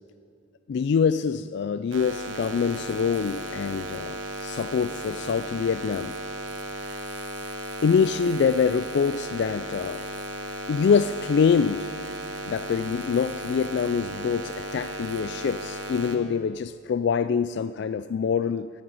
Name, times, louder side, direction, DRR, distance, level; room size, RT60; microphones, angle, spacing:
voice 1, 0.7-6.2 7.8-10.0 10.7-11.9 12.5-18.7, left 6 dB, 55° left, 0.3 m, -25 dB
sound 1, 1.9-16.2, right 1 dB, 65° right, 1.2 m, -35 dB
14.0 x 7.7 x 9.3 m
head